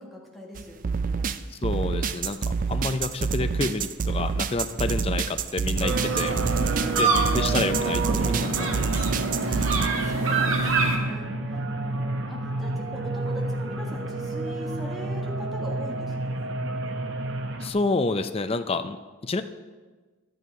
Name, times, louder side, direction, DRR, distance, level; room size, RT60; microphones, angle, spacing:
voice 1, 0.0-1.3 6.6-7.4 9.4-11.3 11.8-16.6, equal, ahead, -2 dB, 1.7 m, -41 dB
sound 1, 0.5-9.9, right 5 dB, 40° right, 0.4 m, -28 dB
voice 2, 1.5-6.3 7.0-9.2 17.6-19.4, left 3 dB, 30° left, 10 dB, 0.5 m, -29 dB
sound 2, 5.8-17.7, right 2 dB, 60° right, 0.9 m, -29 dB
sound 3, 5.9-11.0, right 4 dB, 80° right, 1.6 m, -27 dB
11.0 x 9.2 x 4.8 m, 1.4 s
head